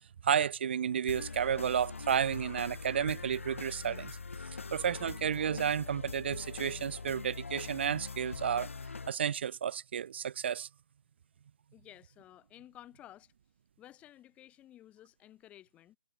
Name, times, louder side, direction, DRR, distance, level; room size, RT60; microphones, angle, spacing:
voice 1, 0.2-4.2 4.7-8.7 9.1-10.7, right 8 dB, 55° right, 0.4 m, -32 dB
sound 1, 1.1-9.1, left 4 dB, 85° left, 0.3 m, -42 dB
voice 2, 11.7-13.3 13.8-16.0, left 13 dB, 20° left, 2.3 m, -54 dB
figure-of-eight pair, 130°, 7 cm